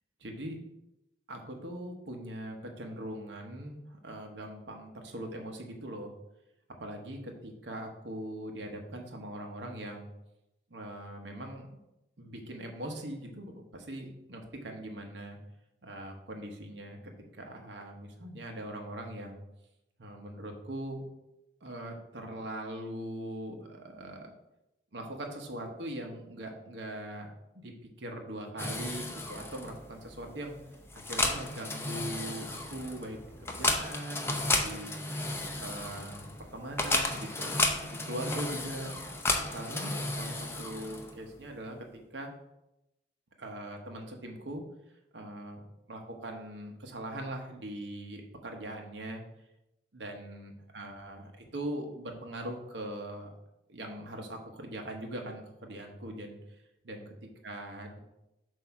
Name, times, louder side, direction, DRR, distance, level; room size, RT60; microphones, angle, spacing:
voice 1, 0.2-0.6 1.3-6.1 6.8-10.1 10.7-11.8 12.2-15.4 15.8-19.4 20.0-21.0 21.6-24.3 24.9-27.3 27.6-27.7 28.0-30.6 30.9-34.9 35.6-38.9 39.4-41.8 42.1-42.3 43.4-44.6 45.1-45.6 45.9-49.2 49.9-53.3 53.7-56.4 56.8-58.0, right 1 dB, 65° right, 2 dB, 1.0 m, -41 dB
sound 1, 28.6-41.3, left 2 dB, 15° left, 0.6 m, -33 dB
7.6 x 2.7 x 5.8 m, 0.89 s
head